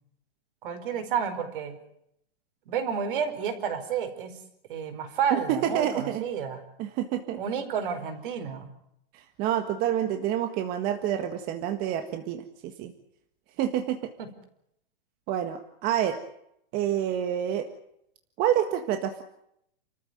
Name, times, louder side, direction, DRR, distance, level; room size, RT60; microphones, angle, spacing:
voice 1, 0.6-1.8 2.7-4.3 4.7-6.6 7.4-8.7 14.2-14.3, right 7 dB, 60° right, 9 dB, 5.0 m, -30 dB
voice 2, 5.3-6.2 6.8-7.4 9.1-12.9 13.6-14.0 15.3-16.2 16.7-17.7 18.4-19.2, right 10 dB, 30° right, 6 dB, 1.7 m, -28 dB
29.5 x 14.0 x 9.3 m, 0.76 s
hypercardioid pair, 155°, 30 cm